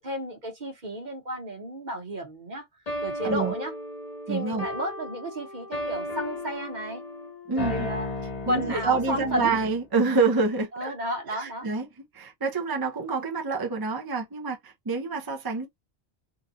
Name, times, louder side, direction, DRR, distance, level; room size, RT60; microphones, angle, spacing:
voice 1, 0.0-2.6 3.0-3.7 4.3-7.0 7.5-8.1 8.5-9.6 10.7-11.7, equal, 45° right, 1.2 m, -32 dB
sound 1, 2.9-9.8, left 1 dB, 40° left, 0.9 m, -35 dB
voice 2, 4.3-4.7 7.5-7.9 8.5-10.9 11.3-11.9 12.1-15.7, right 4 dB, 30° right, 0.5 m, -27 dB
3.8 x 2.3 x 2.7 m
omnidirectional pair, 1.1 m